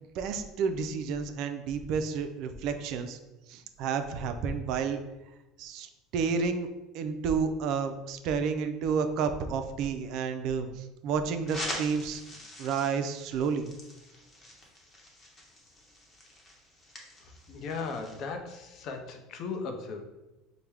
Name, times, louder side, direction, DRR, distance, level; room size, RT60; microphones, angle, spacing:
voice 1, 0.2-3.2 3.5-5.0 5.6-5.9 6.1-6.7 6.9-12.2 12.6-13.7, right 5 dB, 60° right, 8 dB, 0.4 m, -30 dB
sound 1, 11.5-18.3, left 1 dB, 25° left, 0.9 m, -44 dB
voice 2, 17.2-20.0, left 4 dB, 50° left, 5 dB, 0.6 m, -37 dB
4.5 x 2.1 x 3.4 m, 1.0 s
supercardioid pair, 105°, 0 cm